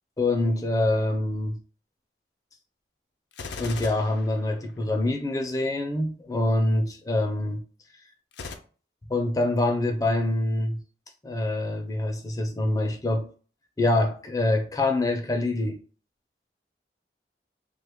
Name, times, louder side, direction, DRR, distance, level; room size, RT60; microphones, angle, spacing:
voice 1, 0.2-1.6 3.6-7.6 9.1-10.8 11.2-13.3 13.8-15.8, left 2 dB, 20° left, 0.4 m, -25 dB
Gunshot gunfire, 3.3-5.1 8.3-8.5, left 4 dB, 80° left, 0.4 m, -38 dB
3.2 x 2.3 x 3.4 m
head